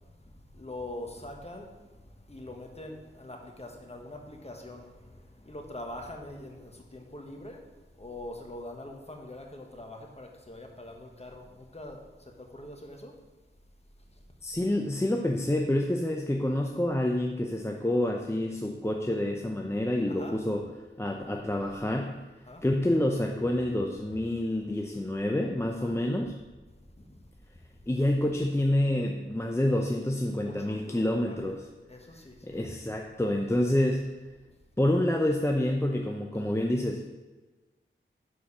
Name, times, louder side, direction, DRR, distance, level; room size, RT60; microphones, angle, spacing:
voice 1, 0.5-1.7 2.1-7.6 8.0-12.0 12.4-13.1 20.1-20.3 22.4-22.6 25.7-26.0 27.0-27.2 30.4-31.5 31.9-32.7 33.4-33.5, left 1 dB, 30° left, 2 dB, 1.3 m, -43 dB
voice 2, 14.4-20.6 21.0-22.1 22.6-26.3 27.9-31.6 32.4-34.1 34.8-37.0, left 1 dB, 15° left, 1 dB, 0.6 m, -28 dB
6.6 x 4.6 x 5.6 m, 1.2 s
wide cardioid pair, 50°, 21 cm